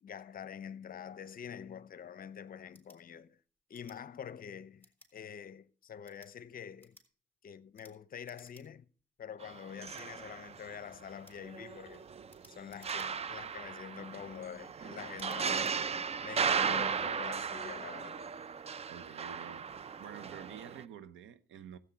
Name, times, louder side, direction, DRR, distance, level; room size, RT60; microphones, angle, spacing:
voice 1, 0.0-3.4 3.7-7.0 7.4-8.9 9.2-12.1 12.5-15.8 16.2-18.3, left 8 dB, 45° left, 0.7 m, -46 dB
sound 1, 2.7-3.0 3.7-4.0 4.8-5.1 5.9-6.3 6.8-7.1 7.7-8.0 8.2-8.7 9.0-9.1 9.9-10.1 11.2-11.4 12.3-13.4 13.9-14.2 15.1-15.8, left 1 dB, 10° left, 3.5 m, -61 dB
sound 2, 9.4-11.1 11.4-20.8, right 6 dB, 30° right, 0.4 m, -36 dB
voice 2, 18.8-19.7 20.0-21.8, right 8 dB, 80° right, 0.9 m, -48 dB
13.5 x 8.1 x 4.4 m
cardioid pair, 90°, 20 cm